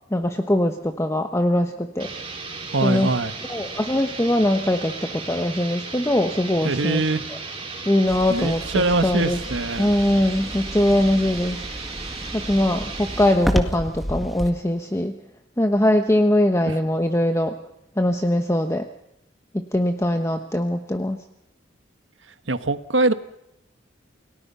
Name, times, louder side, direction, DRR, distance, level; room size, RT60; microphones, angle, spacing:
voice 1, 0.1-2.1 2.8-3.1 3.5-7.0 7.9-9.4 9.8-11.6 12.3-15.2 15.6-17.5 18.0-18.8 19.5-21.2, left 1 dB, 15° left, 6 dB, 1.2 m, -21 dB
sound 1, 2.0-13.4, right 4 dB, 30° right, 5.3 m, -35 dB
voice 2, 2.7-3.3 6.6-7.3 8.3-9.9 16.7-16.8 22.5-23.1, right 3 dB, 80° right, 11 dB, 1.4 m, -23 dB
sound 2, 8.1-14.5, equal, ahead, 1.9 m, -31 dB
29.0 x 18.0 x 5.7 m, 0.81 s
head